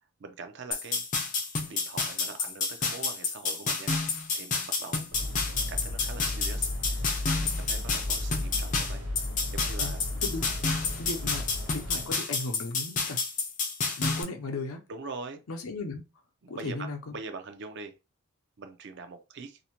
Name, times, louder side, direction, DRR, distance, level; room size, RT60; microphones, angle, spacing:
voice 1, 0.2-1.0 1.7-3.9 4.3-5.3 5.7-7.1 7.4-9.0 9.5-10.1 14.9-15.4 16.4-16.9 17.1-17.9 18.6-19.6, right 4 dB, 50° right, 0.4 m, -42 dB
sound 1, 0.7-14.2, left 4 dB, 35° left, 0.4 m, -30 dB
sound 2, 5.1-12.1, left 1 dB, 75° right, 0.9 m, -34 dB
voice 2, 9.8-10.5 11.0-11.5 11.7-13.2 14.0-14.8 15.5-16.0 16.5-17.2, left 3 dB, 75° left, 0.6 m, -36 dB
2.6 x 2.1 x 2.9 m
head